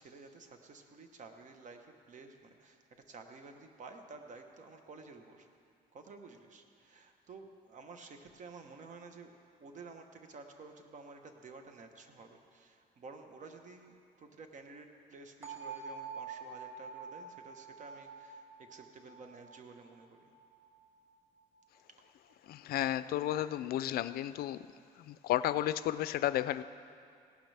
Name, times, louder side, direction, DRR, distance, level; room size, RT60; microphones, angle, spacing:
voice 1, 0.0-5.5 5.9-9.3 9.6-20.3, right 4 dB, 45° right, 1.2 m, -52 dB
sound 1, 15.4-21.3, right 5 dB, 10° right, 2.1 m, -47 dB
voice 2, 22.5-24.6 25.1-26.6, left 13 dB, 65° left, 0.4 m, -32 dB
17.5 x 12.0 x 3.4 m
cardioid pair, 110°, 17 cm